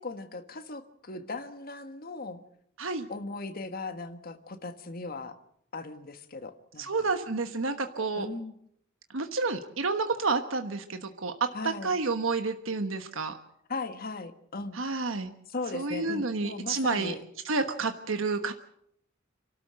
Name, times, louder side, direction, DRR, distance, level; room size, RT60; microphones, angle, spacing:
voice 1, 0.0-2.4 3.1-5.4 5.7-7.1 8.1-8.5 11.5-11.9 13.7-14.8 15.5-17.2, left 3 dB, 45° left, 8 dB, 1.6 m, -38 dB
voice 2, 6.8-8.3 9.1-13.3 14.7-15.3 15.7-17.1 17.4-18.5, right 3 dB, 80° right, 7 dB, 1.3 m, -30 dB
28.0 x 13.0 x 7.7 m, 0.72 s
head